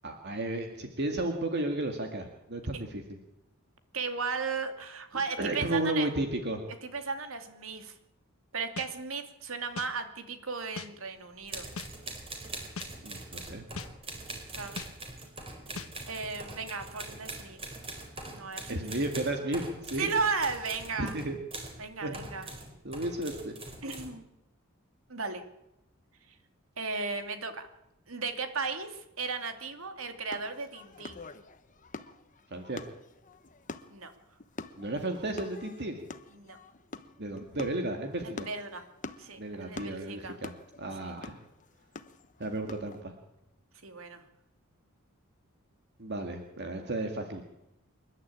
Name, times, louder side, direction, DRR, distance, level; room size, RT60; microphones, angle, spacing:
voice 1, 0.0-3.2 5.1-6.6 13.0-13.7 18.7-20.1 21.0-21.4 22.0-22.2 22.8-23.5 32.5-32.8 34.8-36.0 37.2-38.5 39.4-40.5 40.8-41.4 42.4-43.2 46.0-47.4, right 1 dB, 55° right, 4 dB, 2.1 m, -33 dB
voice 2, 3.9-6.1 6.8-7.9 8.5-11.7 14.6-14.8 16.1-17.6 18.3-18.7 20.0-21.1 21.8-22.4 23.8-24.3 25.1-25.5 26.8-27.7 28.1-31.3 33.9-34.1 36.4-36.6 38.5-38.8 39.2-40.3 41.0-41.1 43.8-44.2, right 4 dB, 75° right, 7 dB, 2.6 m, -35 dB
sound 1, 8.8-8.9 9.8-9.9 10.8-10.9 11.8-11.9 12.8-12.9 13.8-13.9 14.8-14.9 15.8-15.9, left 4 dB, 90° left, 1.3 m, -39 dB
sound 2, 11.4-21.8 22.1-24.1, right 2 dB, 30° right, 4.6 m, -43 dB
sound 3, 30.3-43.0, left 3 dB, 40° left, 1.1 m, -46 dB
27.5 x 11.5 x 8.8 m, 0.90 s
head